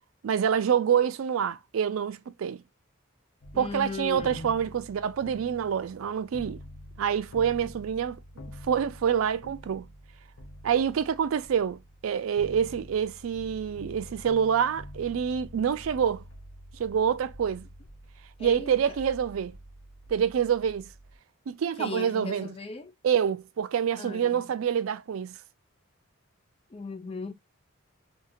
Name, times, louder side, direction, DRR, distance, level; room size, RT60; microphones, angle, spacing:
voice 1, 0.2-2.6 3.6-6.6 7.0-8.2 8.6-9.9 10.6-16.2 16.8-17.7 18.4-19.5 20.1-20.9 21.5-22.5 23.0-25.3, right 8 dB, 80° right, 0.4 m, -27 dB
sound 1, 3.4-21.2, left 1 dB, 75° left, 0.6 m, -47 dB
voice 2, 3.5-4.7 18.4-19.0 21.8-22.9 24.0-24.4 26.7-27.3, left 4 dB, 25° left, 0.5 m, -38 dB
2.7 x 2.7 x 2.3 m
head